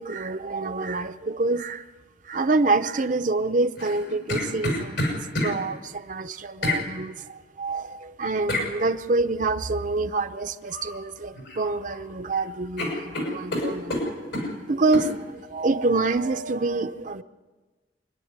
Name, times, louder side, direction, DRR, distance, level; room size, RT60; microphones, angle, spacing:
voice 1, 0.0-1.9 2.2-5.1 5.4-14.3 14.7-17.2, right 3 dB, 45° right, 0.7 m, -27 dB
sound 1, 3.8-5.5 6.6-6.8 8.5-8.7 10.7-11.0 11.3-12.0 12.3-12.4 12.8-14.5 14.9-15.1, left 1 dB, 75° left, 6.4 m, -28 dB
26.5 x 10.5 x 9.5 m
head